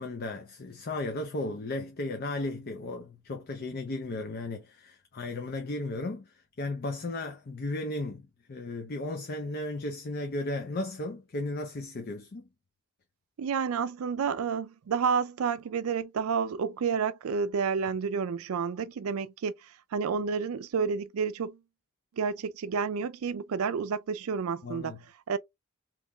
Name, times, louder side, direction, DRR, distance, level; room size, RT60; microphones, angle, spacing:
voice 1, 0.0-6.3 6.6-8.2 8.5-12.5 24.6-25.0, left 2 dB, 45° left, 0.5 m, -35 dB
voice 2, 13.4-19.5 19.9-21.6 22.2-24.9 25.3-25.4, right 6 dB, 80° right, 0.4 m, -30 dB
3.6 x 3.1 x 2.2 m
head